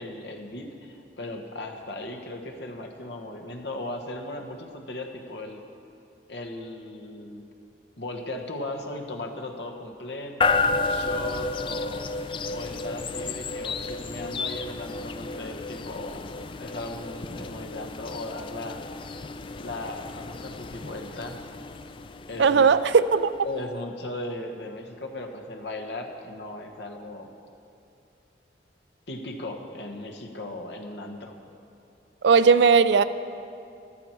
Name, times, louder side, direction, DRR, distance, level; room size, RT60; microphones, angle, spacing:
voice 1, 0.0-5.6 6.3-7.4 8.0-12.1 12.5-16.3 16.6-18.8 19.6-21.4 22.3-22.7 23.4-27.3 29.1-31.3, left 1 dB, 70° left, 3 dB, 1.3 m, -37 dB
sound 1, 10.4-23.4, left 4 dB, 30° left, 0.3 m, -32 dB
voice 2, 22.4-23.3 32.2-33.0, right 5 dB, 80° right, 14 dB, 0.4 m, -18 dB
14.0 x 12.5 x 4.5 m, 2.6 s
head